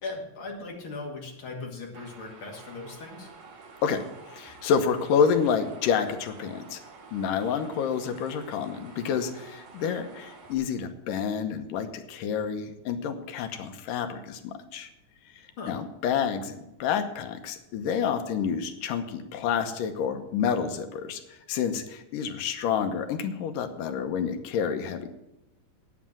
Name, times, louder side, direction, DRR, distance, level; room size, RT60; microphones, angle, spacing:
voice 1, 0.0-3.3 15.6-15.8, left 3 dB, 45° left, -1 dB, 2.8 m, -38 dB
sound 1, 1.9-10.5, right 4 dB, 85° right, 3.5 m, -49 dB
voice 2, 3.8-6.8 7.1-14.9 15.7-25.1, left 7 dB, 85° left, 7 dB, 2.6 m, -29 dB
9.4 x 8.7 x 7.3 m, 0.91 s
omnidirectional pair, 3.8 m